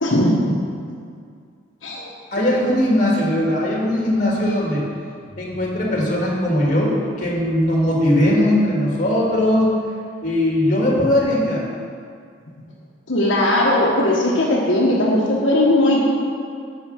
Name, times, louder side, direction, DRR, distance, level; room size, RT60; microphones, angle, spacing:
voice 1, 0.0-0.4 1.8-2.0 13.1-16.0, left 1 dB, 75° left, -4 dB, 1.3 m, -18 dB
voice 2, 2.3-4.8 5.4-9.7 10.2-11.6, left 1 dB, 40° left, -3 dB, 1.9 m, -19 dB
10.5 x 4.9 x 6.3 m, 2.3 s
head